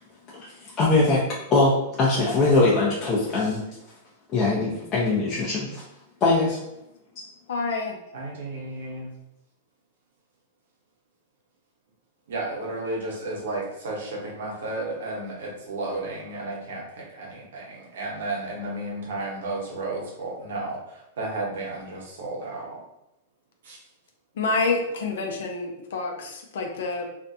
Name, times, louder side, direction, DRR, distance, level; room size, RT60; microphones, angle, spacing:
voice 1, 0.3-1.2 1.5-3.7 4.3-5.8 6.2-6.6, left 3 dB, 30° left, -5 dB, 0.5 m, -22 dB
voice 2, 7.5-8.0 24.4-27.1, left 3 dB, 75° left, 2 dB, 0.5 m, -27 dB
voice 3, 8.1-9.1 12.3-22.8 23.6-23.9, right 2 dB, 80° right, -3 dB, 1.0 m, -33 dB
2.5 x 2.2 x 2.6 m, 0.86 s
hypercardioid pair, 135°, 0 cm